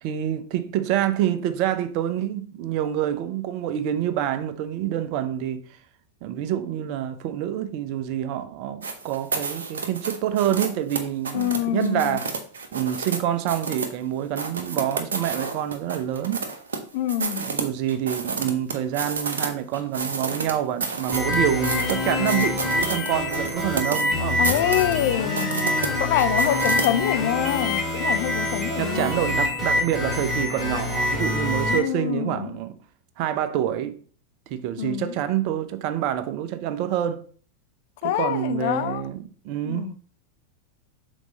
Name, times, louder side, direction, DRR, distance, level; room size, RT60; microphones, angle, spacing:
voice 1, 0.0-5.6 6.2-12.3 12.7-16.5 17.4-24.4 25.5-25.8 28.8-32.8 33.2-34.0 34.5-37.2 38.0-39.9, right 11 dB, 45° right, 0.6 m, -27 dB
sound 1, 8.8-13.2 13.5-13.9 14.4-16.8 17.1-19.5 19.7-26.9, right 4 dB, 65° right, 0.9 m, -30 dB
voice 2, 11.3-12.2 16.9-17.5 24.4-25.5 26.0-29.1 31.7-32.5 34.8-35.1 38.0-39.1 39.6-40.0, left 12 dB, 50° left, 0.4 m, -25 dB
sound 2, 21.1-31.8, left 2 dB, 5° right, 2.0 m, -25 dB
6.2 x 4.0 x 3.9 m
figure-of-eight pair, 90°, 0 cm